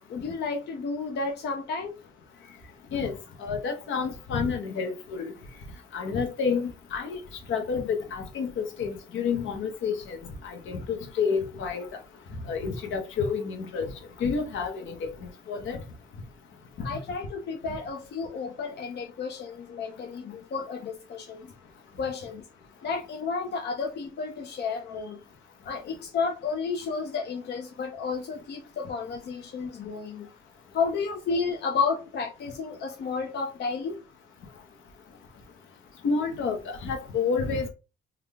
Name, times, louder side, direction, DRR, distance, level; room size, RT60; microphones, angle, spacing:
voice 1, 0.1-1.9 16.8-21.5 22.0-22.5 22.8-25.2 25.6-30.3 30.7-34.0, left 5 dB, 60° left, 0.6 m, -32 dB
voice 2, 2.9-5.3 5.9-7.2 7.5-8.5 8.8-10.2 10.4-11.9 12.5-13.9 14.2-15.1 15.5-15.8 36.0-37.7, left 5 dB, 75° left, 0.9 m, -29 dB
3.6 x 2.3 x 3.4 m
cardioid pair, 90°, 20 cm